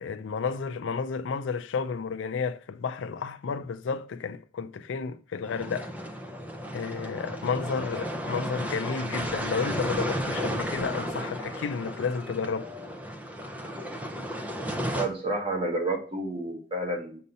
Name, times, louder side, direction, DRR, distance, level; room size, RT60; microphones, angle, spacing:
voice 1, 0.0-5.9 6.7-12.7, left 5 dB, 80° left, 0.4 m, -32 dB
sound 1, 5.5-15.1, equal, 10° right, 0.5 m, -33 dB
voice 2, 14.9-17.2, right 2 dB, 25° right, 1.2 m, -30 dB
6.4 x 2.8 x 5.3 m
head